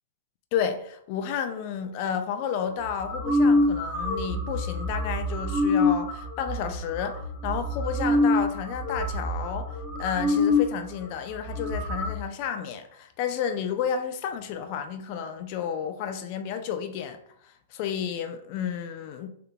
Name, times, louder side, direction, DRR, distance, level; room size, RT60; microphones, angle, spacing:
voice 1, 0.5-19.3, left 8 dB, 45° left, 0.4 m, -31 dB
sound 1, 2.8-10.7 11.0-11.1 11.3-12.1, left 2 dB, ahead, 0.9 m, -26 dB
3.4 x 2.2 x 3.4 m
hypercardioid pair, 140°, 0 cm